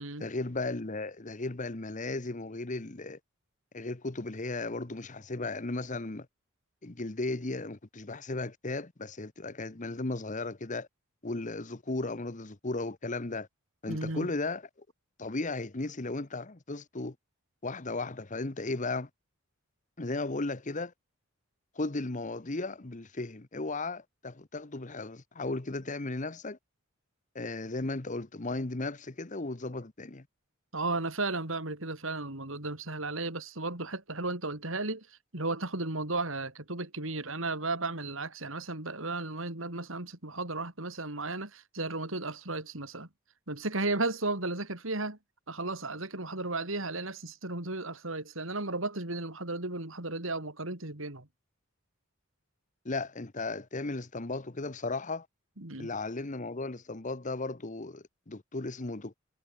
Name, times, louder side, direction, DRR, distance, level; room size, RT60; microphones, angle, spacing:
voice 1, 0.2-3.2 3.7-6.3 6.8-10.9 11.2-13.5 13.8-14.7 15.2-17.2 17.6-19.1 20.0-20.9 21.7-26.6 27.3-30.3 52.8-55.3 55.8-59.2, left 2 dB, 35° left, 1.1 m, -35 dB
voice 2, 13.9-14.3 30.7-35.1 35.3-43.1 43.5-45.2 45.5-51.3 55.6-55.9, right 2 dB, 70° right, 3.6 m, -34 dB
head